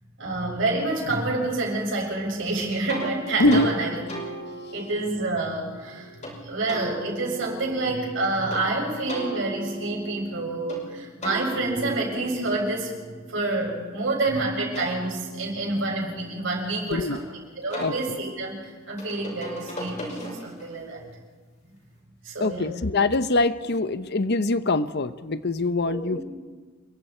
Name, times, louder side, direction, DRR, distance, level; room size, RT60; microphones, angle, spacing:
voice 1, 0.2-4.0 4.7-12.9 13.3-17.3 17.6-21.1 22.2-22.7 25.9-26.0, right 2 dB, 65° right, 0 dB, 6.8 m, -28 dB
sound 1, 2.9-3.1 3.5-3.7 4.1-6.3 6.7-8.6 9.1-10.8 11.2-14.1 14.5-17.2 17.7-20.7, right 1 dB, 35° left, 6.1 m, -39 dB
voice 2, 22.4-26.2, left 2 dB, 55° left, 12 dB, 0.9 m, -23 dB
28.5 x 23.0 x 4.5 m, 1.4 s
head